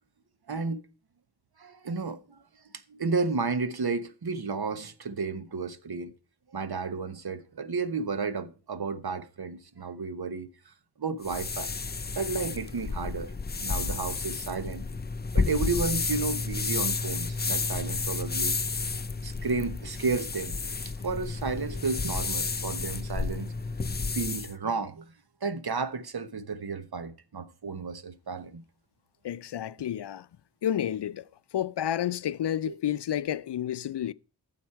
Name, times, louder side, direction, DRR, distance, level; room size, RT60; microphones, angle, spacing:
voice 1, 0.5-0.8 1.6-2.2 2.9-6.1 6.5-10.5 11.0-11.7 12.1-13.3 13.6-14.8 15.3-18.6 19.2-20.6 21.0-23.5 24.1-25.1 25.4-28.6 32.7-32.8, right 4 dB, 65° right, 1.0 m, -32 dB
sound 1, 11.2-24.5, left 4 dB, 25° left, 0.5 m, -31 dB
voice 2, 29.2-30.3 30.6-31.2 31.5-34.1, left 10 dB, 80° left, 0.5 m, -30 dB
14.5 x 7.2 x 4.6 m
wide cardioid pair, 85°, 41 cm